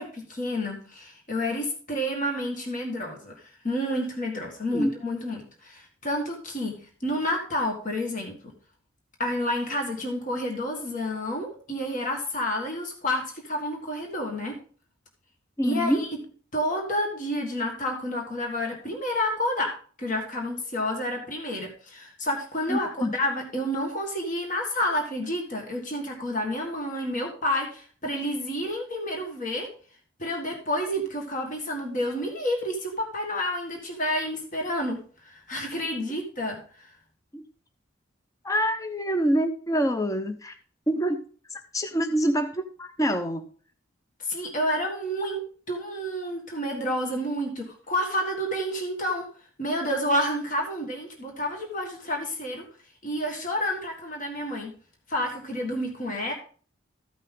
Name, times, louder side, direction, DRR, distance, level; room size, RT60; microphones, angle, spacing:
voice 1, 0.0-8.4 9.2-14.6 15.6-16.1 16.5-19.7 20.0-29.7 30.2-35.0 35.2-36.9 44.2-49.2 49.6-52.6 53.0-54.7 55.1-56.3, left 1 dB, 40° left, 1 dB, 1.7 m, -29 dB
voice 2, 15.6-16.0 22.7-23.2 37.3-37.4 38.4-40.5 40.9-41.2 41.5-43.5, equal, 15° left, 8 dB, 0.6 m, -26 dB
14.0 x 5.5 x 3.7 m, 0.42 s
head